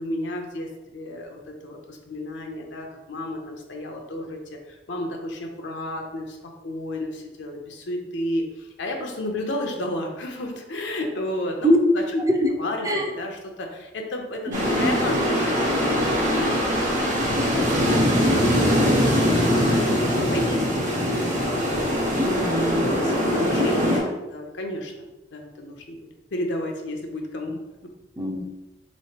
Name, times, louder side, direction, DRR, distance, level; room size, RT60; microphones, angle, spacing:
voice 1, 0.0-12.2 12.6-18.0 18.4-18.8 19.2-21.1 21.4-22.5 22.9-26.0 26.3-27.6, left 1 dB, 80° left, 2 dB, 0.6 m, -32 dB
voice 2, 14.5-15.0 22.2-23.0 28.2-28.4, equal, 20° right, 1 dB, 0.4 m, -23 dB
sound 1, 14.5-24.0, equal, 45° right, 1.0 m, -22 dB
3.8 x 3.1 x 2.9 m, 1.1 s
head